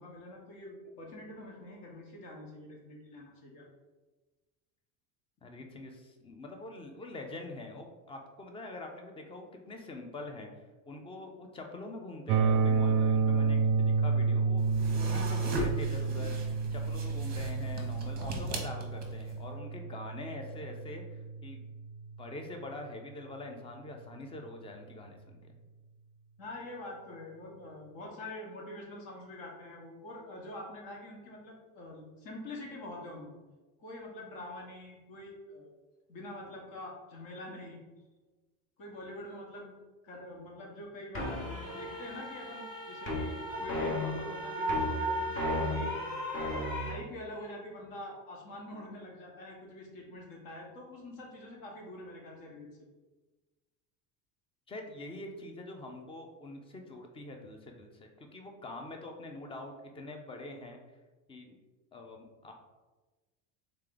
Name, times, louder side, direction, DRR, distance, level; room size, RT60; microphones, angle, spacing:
voice 1, 0.0-3.7 26.4-33.4 33.8-35.7 36.1-37.8 38.8-39.7 40.0-46.0 46.8-52.7, left 1 dB, 55° left, -1 dB, 1.4 m, -45 dB
voice 2, 5.4-21.6 22.2-25.6 54.7-60.8 61.3-61.6 61.9-62.5, left 2 dB, 15° left, 4 dB, 0.4 m, -45 dB
sound 1, 12.3-22.2, right 5 dB, 50° right, 0.5 m, -30 dB
sound 2, 14.6-19.3, right 1 dB, 25° right, 0.8 m, -39 dB
sound 3, 41.1-46.9, equal, 30° left, 1.0 m, -34 dB
3.8 x 3.2 x 3.8 m, 1.2 s
cardioid pair, 140°, 40 cm